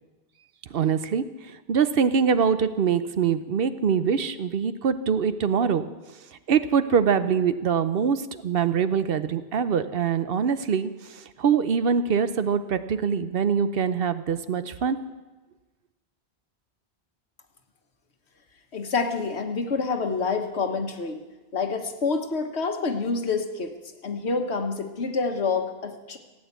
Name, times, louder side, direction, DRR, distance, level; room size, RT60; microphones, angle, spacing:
voice 1, 0.7-1.2 1.7-5.9 6.5-15.0, right 6 dB, 65° right, 12 dB, 0.9 m, -24 dB
voice 2, 18.7-21.2 21.5-23.7 24.0-26.2, left 4 dB, 80° left, 6 dB, 1.5 m, -27 dB
15.5 x 8.8 x 8.2 m, 1.2 s
omnidirectional pair, 1.1 m